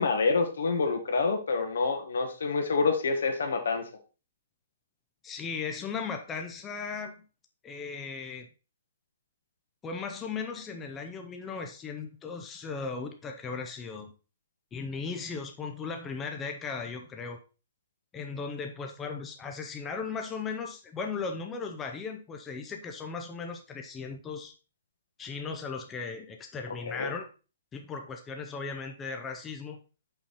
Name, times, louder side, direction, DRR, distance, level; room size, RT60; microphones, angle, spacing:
voice 1, 0.0-3.8 26.9-27.1, left 4 dB, 80° left, 5 dB, 1.6 m, -27 dB
voice 2, 5.2-7.2 7.6-8.5 9.8-14.1 14.7-17.4 18.1-24.5 25.2-27.3 27.7-29.8, left 5 dB, 10° left, 4 dB, 0.5 m, -37 dB
5.6 x 5.4 x 4.2 m, 0.34 s
hypercardioid pair, 175°, 0 cm